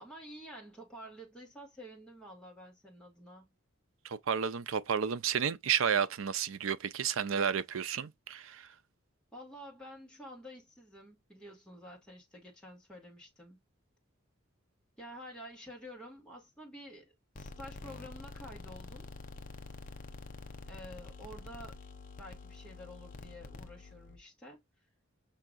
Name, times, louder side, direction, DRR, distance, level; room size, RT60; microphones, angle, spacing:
voice 1, 0.0-3.5 9.3-13.6 15.0-19.1 20.7-21.8 22.2-24.6, equal, 5° left, 1.6 m, -50 dB
voice 2, 4.0-8.7, right 7 dB, 75° right, 0.5 m, -31 dB
sound 1, 17.4-24.2, left 3 dB, 40° left, 0.6 m, -47 dB
5.8 x 2.7 x 2.4 m
head